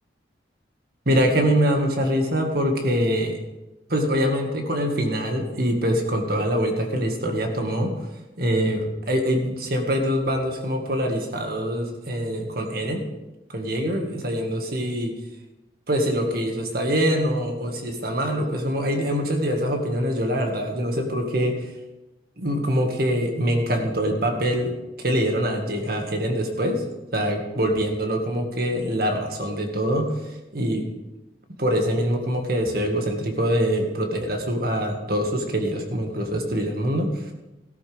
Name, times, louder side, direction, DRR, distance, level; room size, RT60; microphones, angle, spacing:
voice 1, 1.1-3.4 3.9-7.9 8.4-13.1 13.5-15.1 15.9-21.7 22.4-24.7 25.0-26.8 27.1-30.1 30.5-30.9 31.6-37.3, equal, 55° right, 3 dB, 2.0 m, -24 dB
15.0 x 13.0 x 3.6 m, 1.0 s
head